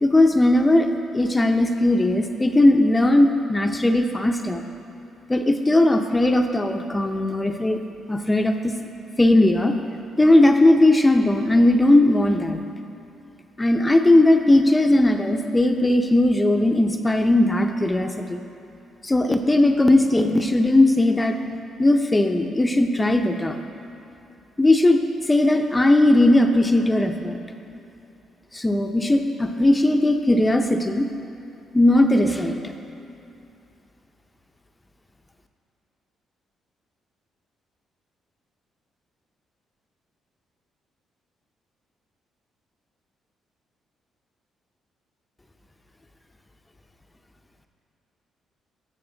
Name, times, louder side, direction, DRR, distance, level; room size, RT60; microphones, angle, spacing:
voice 1, 0.0-4.6 5.3-7.8 8.1-8.7 9.2-9.7 10.2-12.6 13.6-18.4 19.0-21.4 21.8-23.6 24.6-27.4 28.5-31.1 31.7-32.6, left 1 dB, 15° left, 5 dB, 0.6 m, -18 dB
15.0 x 6.6 x 3.9 m, 2.8 s
cardioid pair, 90°, 0 cm